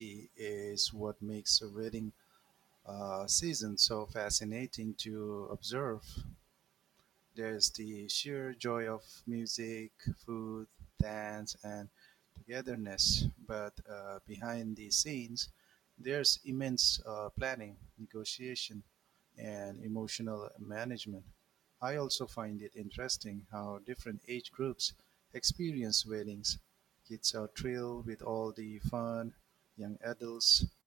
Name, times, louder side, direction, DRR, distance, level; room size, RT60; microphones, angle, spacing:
voice 1, 0.0-2.1 2.9-6.3 7.4-10.7 11.0-11.9 12.5-15.5 16.0-18.8 19.4-21.2 21.8-24.9 25.4-26.6 27.1-29.3 29.8-30.7, right 11 dB, 75° right, 2.0 m, -38 dB
open air
cardioid pair, 90°, 0 cm